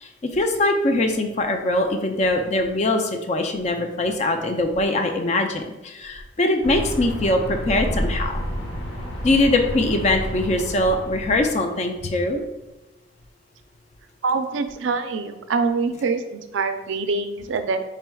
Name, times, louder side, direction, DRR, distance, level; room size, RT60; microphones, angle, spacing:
voice 1, 0.0-8.4 9.2-12.4, left 2 dB, 35° left, 4 dB, 0.4 m, -22 dB
sound 1, 6.6-11.6, equal, 55° left, 1.1 m, -30 dB
voice 2, 14.2-17.8, right 4 dB, 80° right, 8 dB, 0.4 m, -25 dB
4.4 x 3.5 x 2.3 m, 1.0 s
head